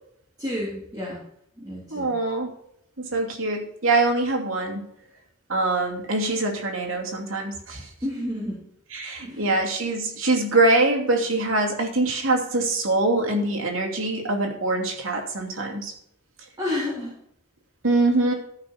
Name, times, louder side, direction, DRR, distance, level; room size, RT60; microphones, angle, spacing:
voice 1, 0.4-1.2 1.6-2.1 8.0-8.6 9.2-9.5 16.6-17.1, left 1 dB, 20° right, -6 dB, 3.3 m, -30 dB
voice 2, 1.9-2.5 3.0-4.8 5.5-7.9 8.9-15.9 17.8-18.3, right 2 dB, 75° right, 1 dB, 2.8 m, -23 dB
15.0 x 5.8 x 5.8 m, 0.72 s
head